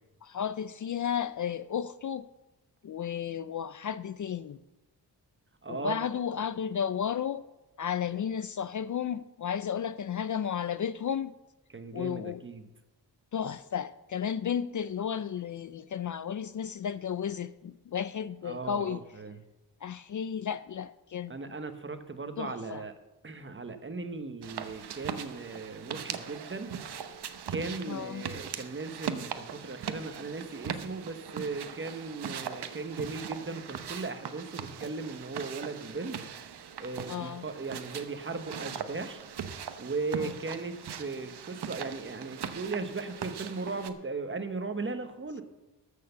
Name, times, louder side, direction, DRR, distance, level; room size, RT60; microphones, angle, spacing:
voice 1, 0.2-2.2 2.8-4.6 5.7-7.4 7.8-11.3 11.9-12.4 13.3-19.0 19.8-21.3 22.4-22.8 27.9-28.3 37.1-37.5 40.2-40.3, left 8 dB, 50° left, 0.4 m, -33 dB
voice 2, 5.6-6.1 6.4-6.5 11.7-12.7 18.4-19.4 21.3-22.9 23.2-26.7 27.5-36.2 36.8-39.2 39.8-45.4, right 3 dB, 30° right, 1.1 m, -37 dB
sound 1, 24.4-43.9, right 7 dB, 70° right, 1.0 m, -40 dB
13.5 x 6.7 x 6.8 m
wide cardioid pair, 120°, 41 cm